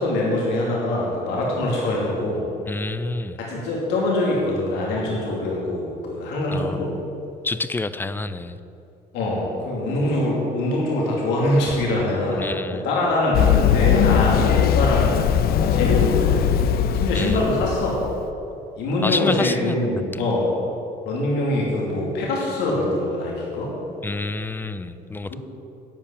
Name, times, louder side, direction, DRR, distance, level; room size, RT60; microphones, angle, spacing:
voice 1, 0.0-2.5 3.4-6.9 9.1-12.5 12.8-16.5 16.9-18.0 18.8-20.5 21.0-23.7 25.3-25.4, left 1 dB, 90° left, -4 dB, 2.7 m, -23 dB
voice 2, 2.7-3.4 6.5-7.0 7.4-8.6 12.3-12.8 17.1-17.7 19.0-20.2 24.0-25.3, left 2 dB, 10° left, 13 dB, 0.4 m, -28 dB
Run, 13.3-18.1, left 8 dB, 65° left, 0.6 m, -19 dB
12.0 x 5.6 x 8.7 m, 2.8 s
cardioid pair, 110°, 17 cm